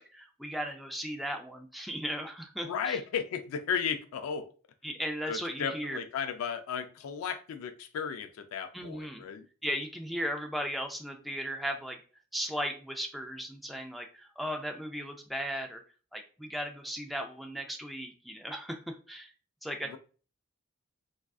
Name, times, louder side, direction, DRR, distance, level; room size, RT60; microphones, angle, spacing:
voice 1, 0.0-3.0 4.8-6.0 8.7-9.2 9.6-12.0 12.3-15.8 16.1-19.3 19.6-20.0, equal, ahead, 0.3 m, -36 dB
voice 2, 2.6-4.5 5.3-9.5 19.9-20.0, left 7 dB, 80° left, 0.3 m, -34 dB
3.5 x 2.4 x 2.3 m
head